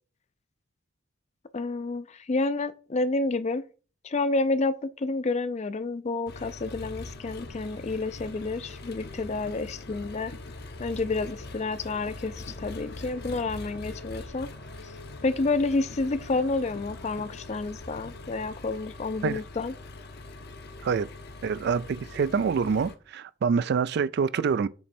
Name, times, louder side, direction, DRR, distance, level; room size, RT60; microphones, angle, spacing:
voice 1, 1.5-3.6 4.0-10.3 10.8-14.5 14.8-14.9 15.2-19.7, left 3 dB, 35° left, 0.4 m, -29 dB
Engine, 6.3-23.0, left 2 dB, 55° left, 0.8 m, -43 dB
sound 1, 7.2-18.5, left 2 dB, 85° left, 1.0 m, -48 dB
voice 2, 21.4-24.7, right 6 dB, 55° right, 0.3 m, -26 dB
7.2 x 3.1 x 4.3 m
head